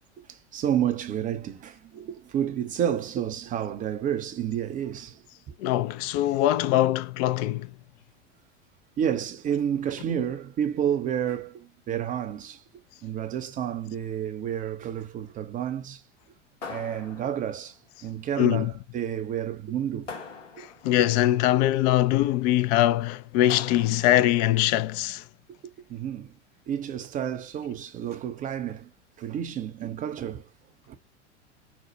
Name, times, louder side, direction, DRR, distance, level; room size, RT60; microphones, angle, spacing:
voice 1, 0.3-5.5 9.0-12.6 13.0-16.0 16.7-20.1 20.6-20.7 25.5-26.3 26.7-28.9 29.2-30.4 30.9-31.0, right 9 dB, 25° right, 0.5 m, -30 dB
voice 2, 5.6-7.7 18.4-18.7 20.6-25.2, left 14 dB, 35° left, 0.4 m, -22 dB
sound 1, 16.6-17.7 20.1-21.0 23.5-24.4, left 4 dB, 80° left, 1.4 m, -41 dB
5.0 x 2.1 x 2.7 m
figure-of-eight pair, 85°, 36 cm